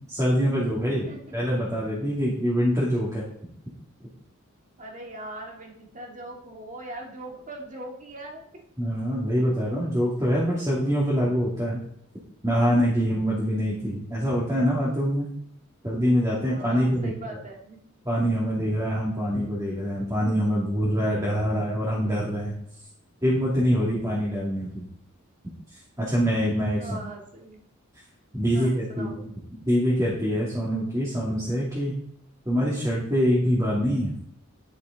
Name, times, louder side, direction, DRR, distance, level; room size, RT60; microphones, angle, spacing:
voice 1, 0.1-1.1 1.3-3.3 8.8-11.8 12.4-15.3 15.8-17.4 18.0-22.5 23.2-24.8 26.0-26.9 28.3-29.3 29.5-32.0 32.5-34.1, equal, 15° right, -6 dB, 2.4 m, -24 dB
voice 2, 4.8-8.6 16.5-17.8 26.8-27.6 28.5-29.2, right 2 dB, 35° right, 1 dB, 1.9 m, -40 dB
11.0 x 6.5 x 4.1 m, 0.73 s
head